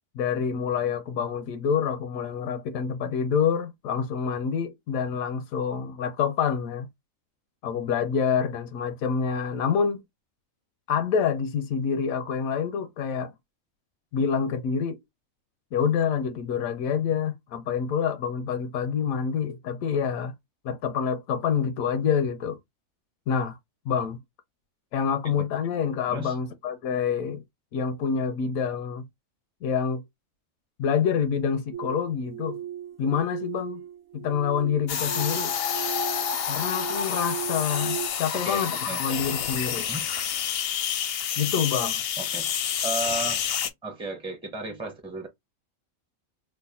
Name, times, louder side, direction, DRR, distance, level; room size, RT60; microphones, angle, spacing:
voice 1, 0.1-6.9 7.6-10.0 10.9-13.3 14.1-15.0 15.7-20.3 20.6-22.6 23.3-23.6 23.9-24.2 24.9-27.4 27.7-29.0 29.6-30.0 30.8-32.6 33.0-33.8 34.1-35.5 36.4-39.9 41.4-42.0, left 7 dB, 80° left, 1.0 m, -27 dB
sound 1, 31.7-38.1, right 11 dB, 65° right, 0.9 m, -37 dB
sound 2, 34.9-43.7, left 8 dB, 65° left, 0.6 m, -28 dB
voice 2, 38.3-39.0 39.9-40.1 42.2-42.5 42.8-43.4 43.8-45.3, right 3 dB, 5° right, 0.4 m, -34 dB
3.2 x 2.1 x 4.0 m
omnidirectional pair, 1.4 m